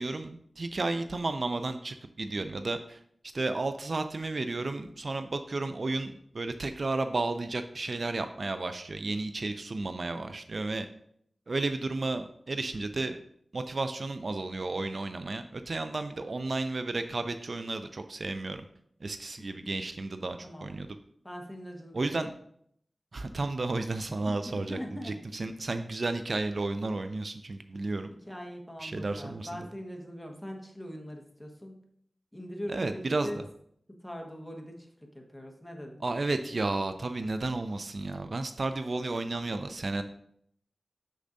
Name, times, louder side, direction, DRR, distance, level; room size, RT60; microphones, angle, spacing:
voice 1, 0.0-3.0 3.3-10.9 11.5-13.2 13.5-18.6 19.0-20.9 21.9-22.3 23.1-24.8 25.0-28.1 28.8-29.5 32.7-33.3 36.0-40.0, right 2 dB, 60° right, 9 dB, 0.4 m, -32 dB
voice 2, 20.4-20.7 21.2-22.3 24.1-25.2 28.1-31.8 32.3-33.4 34.0-36.0, equal, 10° left, 1 dB, 1.3 m, -42 dB
6.7 x 6.3 x 2.6 m, 0.68 s
wide cardioid pair, 75°, 0 cm